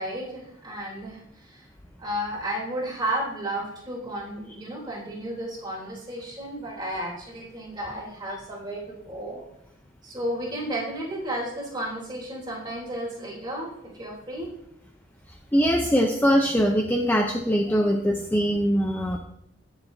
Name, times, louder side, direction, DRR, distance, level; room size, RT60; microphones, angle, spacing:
voice 1, 0.0-1.6 2.0-9.4 10.0-14.5, right 1 dB, 20° right, -4 dB, 3.2 m, -33 dB
voice 2, 15.5-19.2, equal, 10° left, 2 dB, 0.6 m, -22 dB
18.5 x 7.1 x 2.7 m, 0.79 s
head